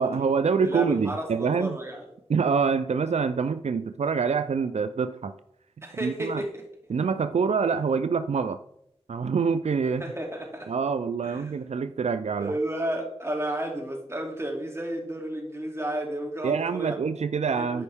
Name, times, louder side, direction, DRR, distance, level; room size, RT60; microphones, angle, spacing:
voice 1, 0.0-1.8 2.3-5.3 6.0-6.4 6.9-8.6 9.1-10.0 10.7-12.5 16.4-17.8, right 5 dB, 80° right, 10 dB, 0.4 m, -26 dB
voice 2, 0.6-2.0 5.8-6.6 10.0-10.7 11.2-11.5 12.4-17.0 17.6-17.8, right 1 dB, 25° right, 0 dB, 2.6 m, -32 dB
13.0 x 5.3 x 3.5 m, 0.76 s
wide cardioid pair, 60°, 11 cm